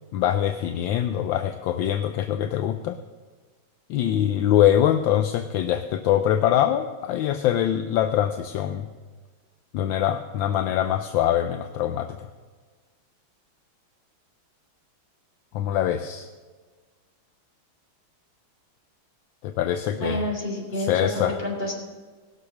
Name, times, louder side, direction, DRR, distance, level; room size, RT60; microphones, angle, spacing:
voice 1, 0.1-3.0 3.9-8.9 9.7-12.3 15.5-16.3 19.4-20.2 20.7-21.4, left 11 dB, 75° left, 8 dB, 1.3 m, -23 dB
voice 2, 19.9-21.7, left 1 dB, 25° left, -1 dB, 3.4 m, -29 dB
19.0 x 6.5 x 6.4 m, 1.4 s
omnidirectional pair, 2.2 m